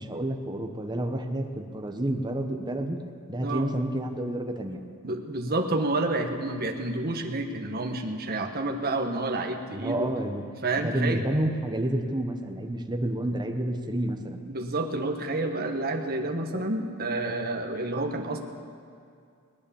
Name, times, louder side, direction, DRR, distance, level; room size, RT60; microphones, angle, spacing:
voice 1, 0.0-3.0 3.3-4.8 9.7-10.4 10.8-14.4, right 1 dB, 20° right, 5 dB, 1.0 m, -29 dB
voice 2, 5.0-10.1 10.6-11.2 14.5-18.4, right 2 dB, 45° right, 4 dB, 1.2 m, -29 dB
20.0 x 9.6 x 7.1 m, 2.4 s
head